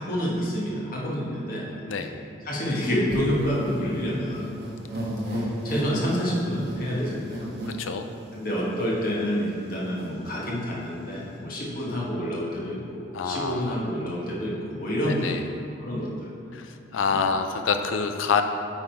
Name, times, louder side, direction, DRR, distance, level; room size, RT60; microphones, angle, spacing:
voice 1, 0.0-1.7 2.4-4.5 5.3-7.5 8.3-15.3 15.8-16.3 17.1-17.2, equal, 45° left, -5 dB, 1.4 m, -28 dB
sound 1, 3.1-8.6 9.2-9.3 9.5-10.1, equal, 55° right, 1.3 m, -34 dB
voice 2, 7.7-8.1 13.1-13.8 15.1-15.4 16.5-18.4, left 5 dB, 85° left, 7 dB, 0.5 m, -27 dB
8.7 x 3.7 x 4.5 m, 2.6 s
head